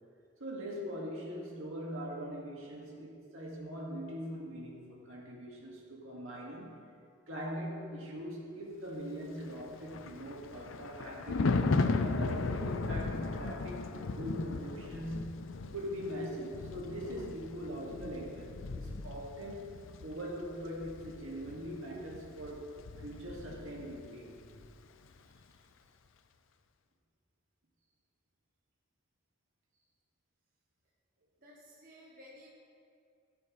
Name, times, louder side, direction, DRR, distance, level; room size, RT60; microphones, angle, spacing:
voice 1, 0.4-6.8 7.3-19.7 20.0-22.7 23.0-24.4, equal, 75° right, -2 dB, 2.0 m, -42 dB
Thunder, 9.5-24.1 24.4-24.7, left 3 dB, 70° left, 0.5 m, -36 dB
voice 2, 31.4-32.5, left 1 dB, 40° right, -4 dB, 1.4 m, -57 dB
16.0 x 8.2 x 3.3 m, 2.4 s
head